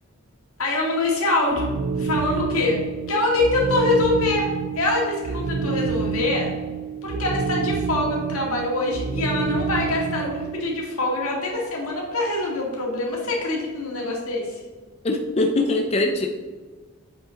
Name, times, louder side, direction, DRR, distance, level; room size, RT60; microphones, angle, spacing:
voice 1, 0.6-1.7 2.0-2.8 3.1-4.5 4.7-6.5 7.0-14.6, left 2 dB, 85° left, -2 dB, 2.1 m, -24 dB
sound 1, 1.5-10.7, right 5 dB, 85° right, 0.4 m, -28 dB
voice 2, 15.0-16.3, left 2 dB, 30° left, 3 dB, 0.4 m, -22 dB
7.6 x 5.0 x 3.8 m, 1.4 s
head